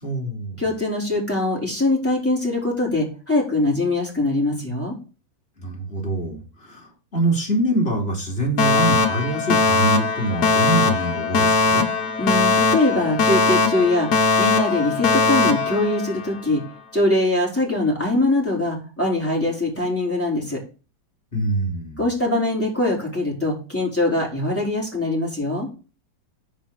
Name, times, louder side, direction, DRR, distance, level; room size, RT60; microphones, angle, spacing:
voice 1, 0.0-0.6 5.6-11.9 21.3-22.0, right 2 dB, 30° left, 0 dB, 3.1 m, -25 dB
voice 2, 0.6-5.0 12.2-14.1 14.4-16.6 16.9-20.6 22.0-25.7, left 2 dB, 5° left, -3 dB, 4.4 m, -22 dB
Alarm, 8.6-16.6, left 4 dB, 60° left, 1.6 m, -20 dB
8.7 x 5.2 x 6.8 m, 0.33 s
omnidirectional pair, 2.0 m